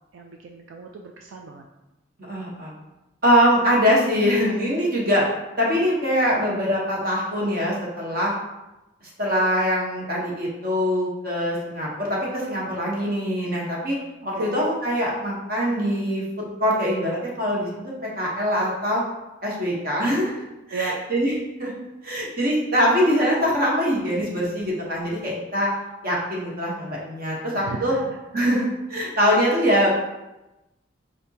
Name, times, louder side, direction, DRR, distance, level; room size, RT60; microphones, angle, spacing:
voice 1, 0.1-1.6 14.3-14.5 20.7-21.0 27.5-28.2, right 4 dB, 80° right, 2 dB, 0.4 m, -35 dB
voice 2, 2.3-2.7 3.2-5.3 5.6-8.3 9.2-14.0 14.2-19.0 19.4-20.3 20.7-21.3 21.6-21.7 22.0-25.7 26.0-27.9 28.3-29.9, equal, 50° right, -4 dB, 1.2 m, -23 dB
5.0 x 3.5 x 2.8 m, 0.98 s
head